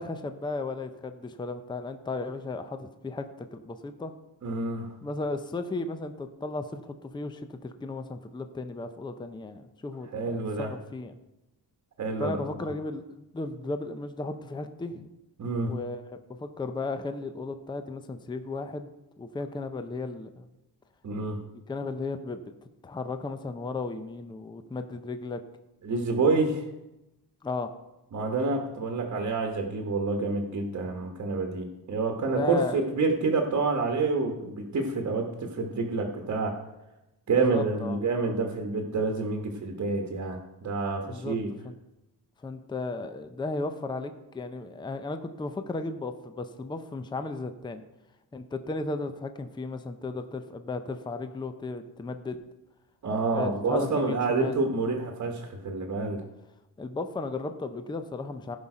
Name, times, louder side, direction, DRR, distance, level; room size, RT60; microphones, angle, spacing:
voice 1, 0.0-4.1 5.0-11.2 12.2-13.0 13.3-15.1 15.7-16.0 16.3-18.9 19.2-20.5 21.7-22.4 22.8-25.4 27.4-27.7 32.4-32.8 37.5-38.0 41.1-41.4 41.6-41.8 42.4-47.8 48.3-52.4 53.3-54.6 56.8-58.6, left 3 dB, 10° left, 9 dB, 0.5 m, -35 dB
voice 2, 4.4-4.9 10.1-10.7 12.0-12.7 15.4-15.7 21.0-21.4 25.8-26.6 28.1-36.6 37.3-41.5 53.0-56.2, right 3 dB, 40° right, 3 dB, 1.2 m, -28 dB
16.0 x 5.5 x 4.9 m, 0.96 s
wide cardioid pair, 170°, 40 cm